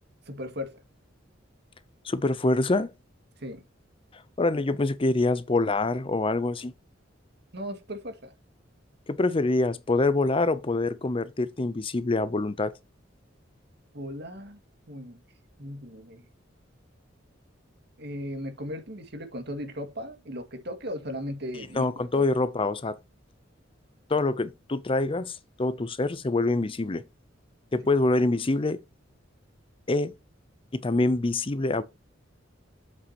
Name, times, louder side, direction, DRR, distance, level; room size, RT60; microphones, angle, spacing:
voice 1, 0.3-0.8 3.4-3.6 7.5-8.3 13.9-14.6 14.9-15.2 15.6-16.3 18.0-21.9 22.2-22.3, equal, 60° right, 2.0 m, -37 dB
voice 2, 2.0-2.9 4.4-6.7 9.1-12.7 21.8-23.0 24.1-27.0 27.7-28.8 29.9-30.1 30.7-31.8, left 2 dB, 30° left, 0.6 m, -25 dB
8.3 x 7.5 x 2.9 m
head